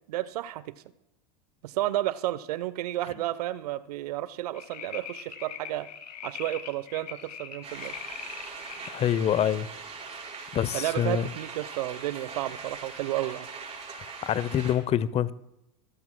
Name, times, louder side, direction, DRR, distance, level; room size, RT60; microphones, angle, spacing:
voice 1, 0.1-0.8 1.6-5.9 6.2-7.9 10.7-13.5, right 15 dB, 70° right, 0.8 m, -32 dB
sound 1, 4.5-9.0 9.5-9.6, left 8 dB, 80° left, 1.5 m, -42 dB
sound 2, 7.6-14.8, right 4 dB, 30° right, 5.3 m, -41 dB
voice 2, 8.9-9.7 10.5-11.3 14.2-15.3, left 10 dB, 30° left, 0.7 m, -26 dB
23.5 x 13.5 x 2.3 m
hypercardioid pair, 95°, 21 cm